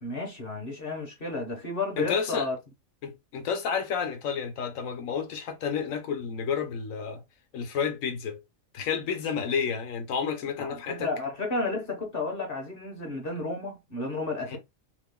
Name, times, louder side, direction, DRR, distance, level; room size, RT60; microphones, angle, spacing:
voice 1, 0.0-2.6 10.6-14.6, left 3 dB, 45° left, 1.0 m, -32 dB
voice 2, 2.0-2.5 3.0-7.2 7.5-8.4 8.7-11.1 14.5-14.6, left 6 dB, 75° left, 1.2 m, -30 dB
3.0 x 2.2 x 3.5 m
omnidirectional pair, 1.4 m